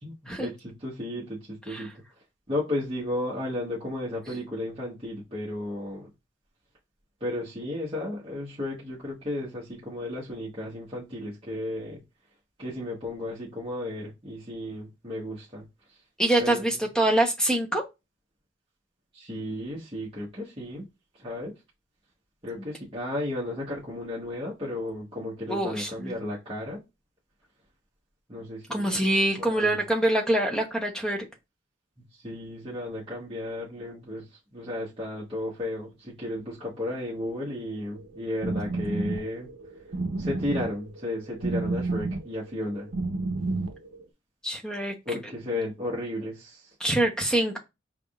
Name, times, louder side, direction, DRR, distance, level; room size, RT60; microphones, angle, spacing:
voice 1, 0.0-1.9 2.5-6.1 7.2-12.0 12.6-15.6 16.4-16.6 19.1-20.9 21.2-21.5 22.4-26.8 28.3-29.0 29.4-29.8 32.2-34.2 34.5-39.5 40.2-42.9 45.1-46.6, left 1 dB, 25° right, 1.1 m, -34 dB
voice 2, 16.2-17.8 25.5-26.1 28.7-31.2 44.4-44.9 46.8-47.6, right 1 dB, 5° left, 0.8 m, -25 dB
sound 1, 37.9-44.0, right 3 dB, 70° right, 0.7 m, -31 dB
5.1 x 3.5 x 2.4 m
head